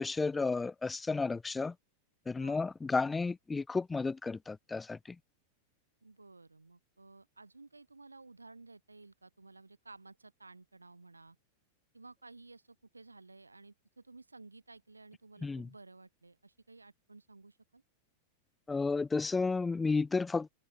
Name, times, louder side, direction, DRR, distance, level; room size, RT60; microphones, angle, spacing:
voice 1, 0.0-1.7 2.3-5.2 15.4-15.7 18.7-20.5, left 4 dB, 10° left, 0.3 m, -32 dB
voice 2, 6.0-11.4 11.9-17.8, right 3 dB, 80° right, 5.7 m, -55 dB
figure-of-eight pair, 90°, 0 cm